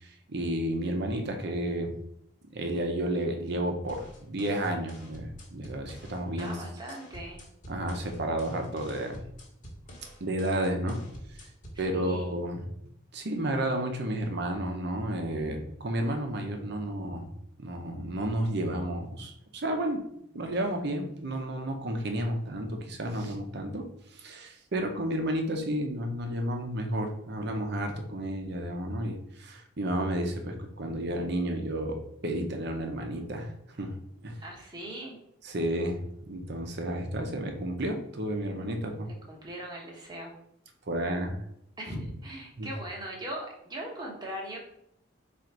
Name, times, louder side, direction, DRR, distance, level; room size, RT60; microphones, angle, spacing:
voice 1, 0.0-1.9 2.5-6.6 7.7-9.2 10.2-11.0 11.8-12.6 13.1-17.3 17.6-20.0 20.3-34.0 34.2-34.4 35.4-36.0 36.3-39.1 40.9-41.4 42.6-42.7, right 1 dB, 55° right, 4 dB, 0.7 m, -31 dB
sound 1, 3.9-11.9, equal, 40° left, 1.1 m, -48 dB
voice 2, 6.4-7.4 11.7-12.4 34.4-35.2 39.3-40.3 41.8-44.6, right 1 dB, 20° right, -1 dB, 1.0 m, -39 dB
3.8 x 2.5 x 4.5 m, 0.74 s
head